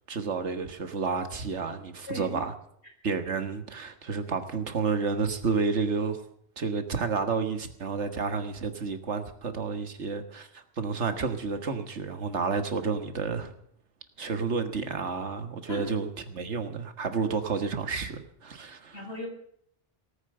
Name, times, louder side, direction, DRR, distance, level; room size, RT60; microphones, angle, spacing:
voice 1, 0.1-2.5 3.0-6.2 6.6-13.5 14.2-19.1, right 5 dB, 85° right, 8 dB, 1.8 m, -30 dB
voice 2, 2.1-2.4 14.3-14.4 15.7-15.9 18.9-19.3, equal, 70° left, 2 dB, 4.4 m, -37 dB
18.0 x 9.3 x 7.8 m, 0.67 s
omnidirectional pair, 1.2 m